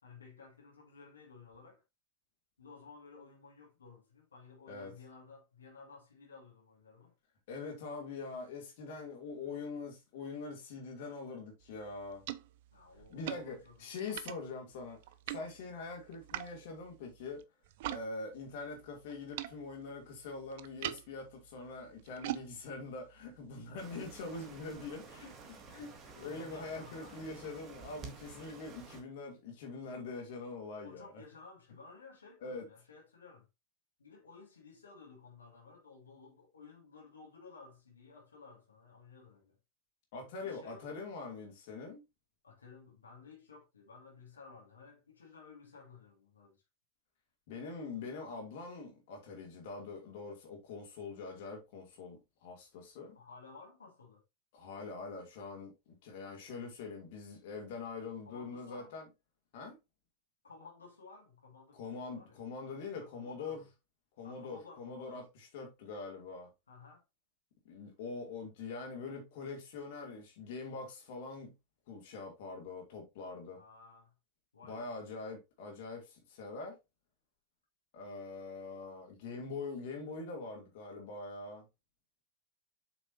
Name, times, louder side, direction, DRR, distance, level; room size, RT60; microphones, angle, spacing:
voice 1, 0.0-1.8 2.6-7.1 12.7-13.8 26.1-27.2 30.8-33.5 34.0-39.6 40.4-41.0 42.4-46.6 53.1-54.2 58.2-58.9 60.4-62.4 62.9-63.7 64.2-65.3 66.7-67.0 73.5-74.1 74.5-74.9, left 4 dB, 70° left, 2.5 m, -55 dB
voice 2, 7.5-12.2 13.1-15.0 15.3-17.4 17.9-31.1 32.4-32.7 40.1-42.0 47.5-53.2 54.5-59.1 59.5-59.8 61.7-63.6 64.2-66.5 67.6-71.5 71.9-73.6 74.6-76.8 77.9-81.7, left 4 dB, 50° left, 2.7 m, -44 dB
sound 1, 11.6-18.1 18.3-24.2, right 15 dB, 50° right, 0.5 m, -46 dB
sound 2, 23.8-29.0, right 5 dB, 30° right, 1.9 m, -51 dB
7.7 x 6.0 x 2.7 m
figure-of-eight pair, 90°, 0 cm